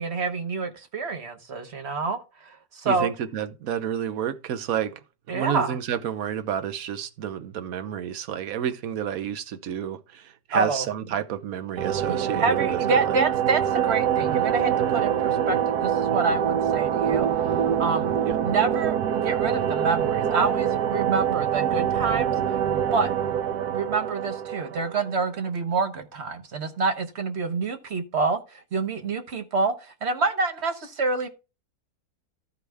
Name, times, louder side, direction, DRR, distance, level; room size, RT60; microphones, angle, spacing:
voice 1, 0.0-3.1 5.3-5.8 10.5-10.9 12.1-17.3 17.8-18.1 18.4-22.3 22.9-23.1 23.7-31.3, right 4 dB, 50° right, 1.2 m, -27 dB
voice 2, 2.8-4.9 5.3-13.2 18.2-18.4, right 9 dB, 70° right, 1.2 m, -30 dB
sound 1, 11.8-25.3, right 9 dB, 90° right, 1.2 m, -25 dB
14.0 x 4.9 x 3.4 m
omnidirectional pair, 1.6 m